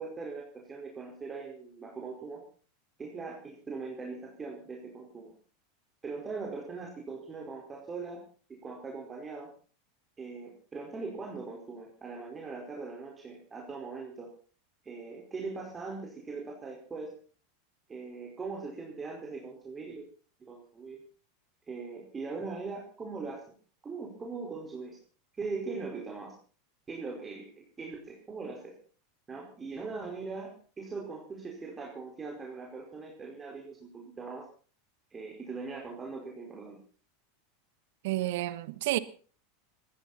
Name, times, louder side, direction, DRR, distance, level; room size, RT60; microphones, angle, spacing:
voice 1, 0.0-2.4 3.0-5.3 6.0-8.2 8.5-9.5 10.2-14.3 14.8-17.2 17.9-20.1 20.4-21.0 21.7-23.4 23.8-25.0 25.3-26.4 26.9-28.7 29.3-34.5 35.1-36.8, right 4 dB, 20° right, 4.8 m, -40 dB
voice 2, 38.0-39.0, right 16 dB, 65° right, 1.2 m, -30 dB
20.0 x 15.5 x 4.3 m
hypercardioid pair, 90°, 0 cm